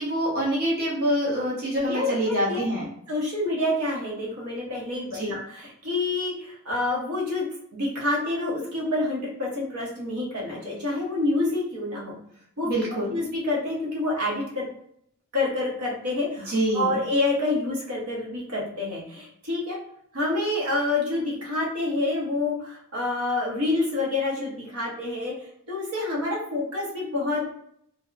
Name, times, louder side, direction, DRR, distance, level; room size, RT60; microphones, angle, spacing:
voice 1, 0.0-2.8 5.1-5.3 12.6-13.1 16.5-16.9, equal, 45° right, -5 dB, 0.7 m, -25 dB
voice 2, 1.9-2.7 3.1-7.5 7.7-12.2 12.6-12.7 13.1-14.7 15.3-19.8 20.1-25.3 25.7-27.5, left 2 dB, 75° right, -3 dB, 0.8 m, -27 dB
2.8 x 2.0 x 2.4 m, 0.69 s
head